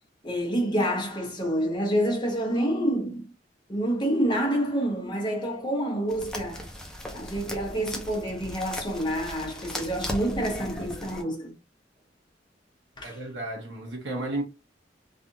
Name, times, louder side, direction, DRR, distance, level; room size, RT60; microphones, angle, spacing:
voice 1, 0.2-3.2 3.7-6.7 7.1-11.5 13.0-13.2, equal, 25° left, 1.1 m, -28 dB
sound 1, 6.1-11.2, left 1 dB, 5° left, 0.6 m, -38 dB
voice 2, 13.0-14.4, right 2 dB, 75° right, 1.3 m, -33 dB
3.4 x 2.4 x 2.6 m
head